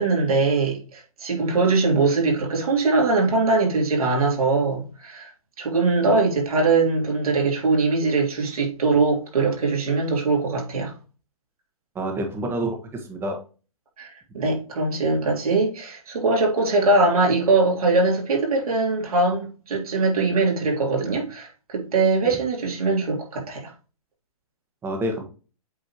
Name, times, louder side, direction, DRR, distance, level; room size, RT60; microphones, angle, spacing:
voice 1, 0.0-5.3 5.6-10.9 14.0-23.7, right 3 dB, 80° right, 3.2 m, -22 dB
voice 2, 11.9-13.4 22.2-22.4 24.8-25.2, right 1 dB, 10° right, 1.5 m, -28 dB
8.2 x 4.2 x 3.0 m
hypercardioid pair, 145°, 19 cm